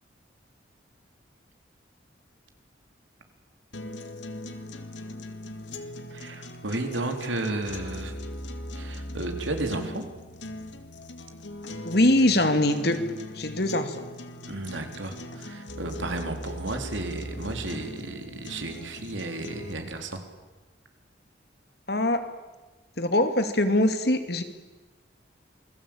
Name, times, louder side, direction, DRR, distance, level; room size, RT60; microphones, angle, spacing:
sound 1, 3.7-19.7, left 1 dB, 75° left, 2.4 m, -39 dB
voice 1, 6.1-8.1 8.8-10.1 14.5-20.2, right 2 dB, 80° right, 5 dB, 3.9 m, -33 dB
voice 2, 11.8-13.0 13.3-13.9 21.9-22.3 23.0-24.4, left 1 dB, 55° left, 8 dB, 2.6 m, -22 dB
28.0 x 21.0 x 8.8 m, 1.2 s
head